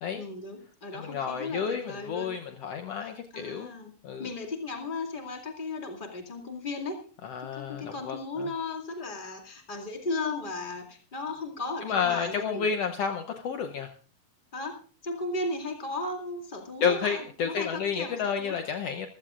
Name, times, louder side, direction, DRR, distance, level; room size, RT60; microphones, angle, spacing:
voice 1, 0.1-2.3 3.0-3.9 4.2-7.1 7.5-12.7 14.5-18.6, left 2 dB, 20° left, 2 dB, 1.8 m, -36 dB
voice 2, 0.9-3.7 4.0-4.3 7.2-8.5 11.8-13.9 16.8-19.1, left 6 dB, 80° left, 5 dB, 1.4 m, -31 dB
26.5 x 15.5 x 2.5 m, 0.40 s
omnidirectional pair, 3.9 m